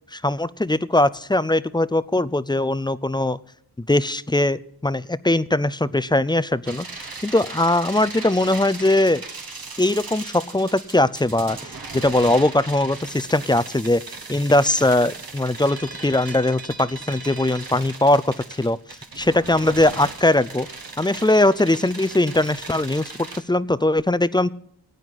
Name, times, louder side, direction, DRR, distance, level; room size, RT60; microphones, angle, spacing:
voice 1, 0.1-3.4 3.8-9.2 9.8-14.0 14.3-18.8 19.2-20.7 21.0-24.5, left 1 dB, 10° left, 17 dB, 0.5 m, -20 dB
sound 1, 6.6-23.4, right 4 dB, 60° right, 1.4 m, -37 dB
18.5 x 9.2 x 4.1 m, 0.69 s
cardioid pair, 50°, 40 cm